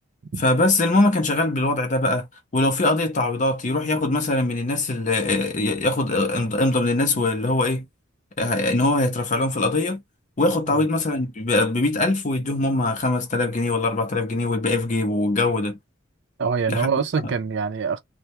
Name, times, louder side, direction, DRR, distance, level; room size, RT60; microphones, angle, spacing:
voice 1, 0.4-2.3 2.5-7.8 8.4-10.0 10.4-15.8 16.7-16.9, left 2 dB, 35° left, 0.5 m, -22 dB
voice 2, 16.4-18.0, right 5 dB, 55° right, 0.4 m, -24 dB
2.2 x 2.1 x 2.8 m
head